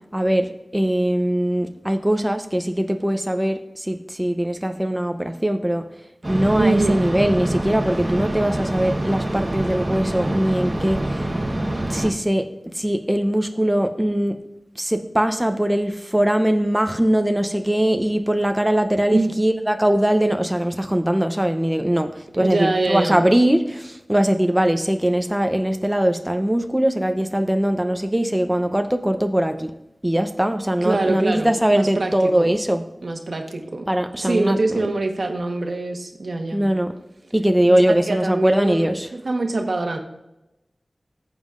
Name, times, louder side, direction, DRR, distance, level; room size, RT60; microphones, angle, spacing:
voice 1, 0.1-5.9 6.3-11.3 11.9-14.4 14.8-29.7 30.0-32.8 33.9-34.9 36.5-36.9 37.3-39.1, right 1 dB, 10° right, 6 dB, 0.7 m, -21 dB
sound 1, 6.2-12.1, right 1 dB, 35° right, 1.1 m, -26 dB
voice 2, 6.6-7.0 19.1-19.3 22.3-23.2 30.8-32.1 32.4-32.5 33.0-33.9 34.2-36.6 37.7-40.0, right 2 dB, 75° right, 3 dB, 1.2 m, -24 dB
14.5 x 7.3 x 2.5 m, 0.90 s
wide cardioid pair, 50°, 0 cm